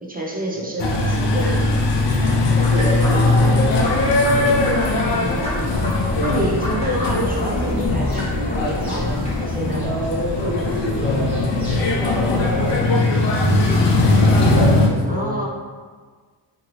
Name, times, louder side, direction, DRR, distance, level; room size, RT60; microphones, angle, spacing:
voice 1, 0.0-1.8 5.1-9.9 15.1-15.4, right 1 dB, 20° right, -3 dB, 0.5 m, -28 dB
sound 1, 0.8-14.9, left 2 dB, 70° left, 0.6 m, -19 dB
sound 2, 2.6-9.4, left 1 dB, 15° left, 0.9 m, -30 dB
voice 2, 2.7-4.7 9.8-12.9 13.7-15.4, equal, 75° right, -5 dB, 1.0 m, -28 dB
sound 3, 4.1-12.8, equal, 5° right, 1.3 m, -36 dB
2.7 x 2.6 x 3.0 m, 1.5 s
wide cardioid pair, 125°, 45 cm